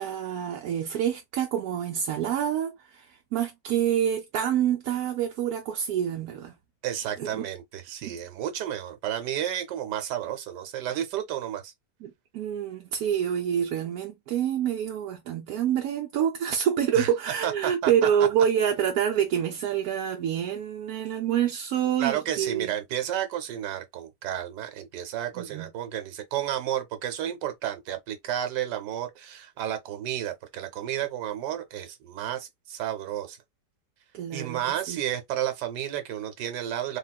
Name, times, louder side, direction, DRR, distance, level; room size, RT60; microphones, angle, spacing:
voice 1, 0.0-6.5 7.2-7.4 8.0-8.1 12.0-22.7 25.4-25.7 34.1-35.0, right 9 dB, 70° right, 0.9 m, -27 dB
voice 2, 6.8-11.7 16.9-17.1 17.4-17.9 22.0-33.4 34.3-37.0, right 11 dB, 90° right, 1.3 m, -32 dB
3.6 x 2.3 x 2.2 m
omnidirectional pair, 1.8 m